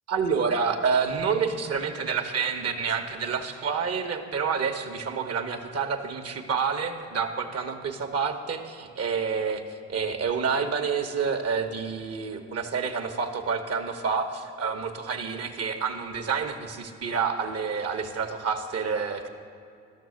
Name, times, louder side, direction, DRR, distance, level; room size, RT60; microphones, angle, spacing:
voice 1, 0.1-9.6 9.9-19.3, right 5 dB, 55° right, 7 dB, 1.0 m, -28 dB
12.5 x 6.4 x 6.3 m, 2.6 s
cardioid pair, 90°, 30 cm